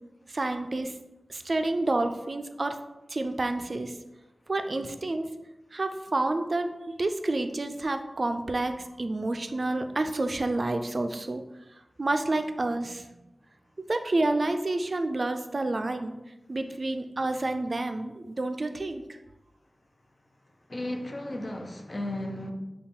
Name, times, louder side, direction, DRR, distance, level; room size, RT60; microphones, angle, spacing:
voice 1, 0.3-0.9 1.3-2.8 3.1-3.9 4.5-5.3 5.7-6.7 7.0-11.4 12.0-13.0 13.9-16.1 16.5-19.0, right 2 dB, 60° right, 7 dB, 0.3 m, -29 dB
voice 2, 20.7-22.5, left 1 dB, 50° left, 3 dB, 0.5 m, -34 dB
3.8 x 2.3 x 3.6 m, 1.0 s
wide cardioid pair, 50°, 0 cm